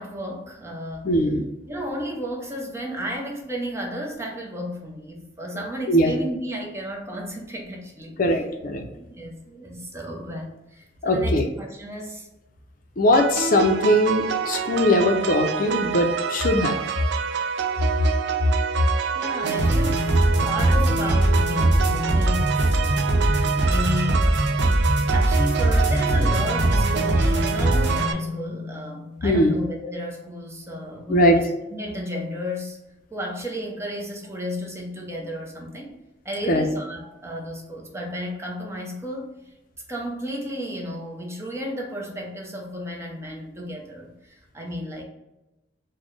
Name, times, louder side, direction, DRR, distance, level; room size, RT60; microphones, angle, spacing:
voice 1, 0.0-1.1 1.7-8.4 8.9-12.3 19.1-24.3 25.1-32.8 33.1-36.0 36.2-39.4 39.9-45.0, equal, 15° right, 0 dB, 0.6 m, -33 dB
voice 2, 1.0-1.4 5.9-6.1 8.2-8.8 11.0-11.5 13.0-16.8 29.2-29.5 31.1-31.4 36.5-36.7, left 1 dB, 50° left, 4 dB, 0.5 m, -20 dB
sound 1, 13.1-28.1, right 7 dB, 70° right, 0.3 m, -27 dB
sound 2, 19.4-29.3, right 1 dB, 90° right, 0.8 m, -22 dB
4.1 x 2.1 x 3.1 m, 0.94 s
head